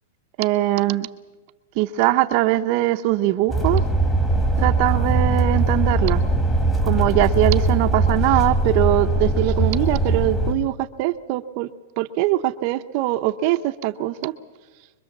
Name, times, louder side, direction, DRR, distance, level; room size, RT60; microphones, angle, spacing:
voice 1, 0.4-1.1 1.8-3.8 4.6-6.2 6.8-11.7 12.0-14.3, right 15 dB, 35° right, 8 dB, 0.7 m, -21 dB
sound 1, 3.5-10.5, right 2 dB, 10° left, 1.7 m, -20 dB
25.0 x 22.0 x 7.3 m, 1.2 s
supercardioid pair, 170°, 0 cm